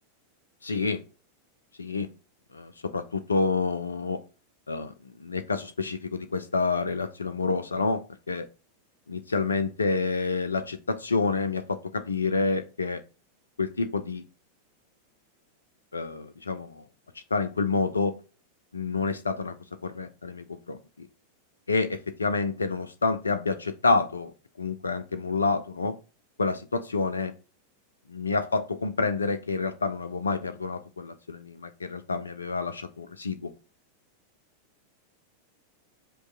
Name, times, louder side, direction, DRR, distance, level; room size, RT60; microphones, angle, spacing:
voice 1, 0.6-1.0 1.8-2.1 2.5-4.2 4.7-4.9 5.2-8.5 9.1-13.0 13.6-14.2 15.9-16.8 17.3-18.2 18.7-19.5 19.8-21.1 21.7-24.3 24.6-26.0 26.4-27.3 28.1-33.5, left 4 dB, 75° left, 10 dB, 0.4 m, -28 dB
5.2 x 2.2 x 3.6 m, 0.33 s
figure-of-eight pair, 90°, 0 cm